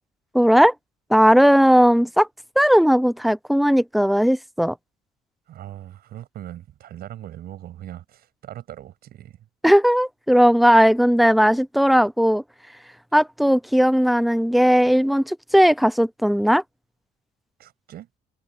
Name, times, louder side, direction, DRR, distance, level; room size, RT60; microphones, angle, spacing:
voice 1, 0.3-0.7 1.1-2.3 2.6-4.7 9.6-12.4 13.1-16.6, equal, ahead, 0.8 m, -17 dB
voice 2, 5.5-9.4 17.6-18.1, right 12 dB, 65° right, 7.0 m, -40 dB
cardioid pair, 110°, 17 cm